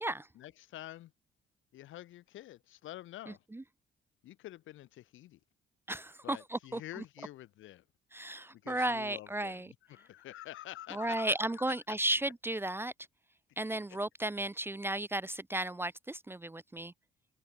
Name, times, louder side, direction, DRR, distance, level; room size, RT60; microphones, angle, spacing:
voice 1, 0.3-1.1 1.7-3.4 4.2-5.4 6.2-7.8 8.2-12.0 13.9-14.0, left 14 dB, 80° left, 1.5 m, -48 dB
voice 2, 3.3-3.6 5.9-6.8 8.1-9.7 10.9-12.9 13.6-16.9, right 1 dB, 10° right, 0.6 m, -34 dB
cardioid pair, 90°, 20 cm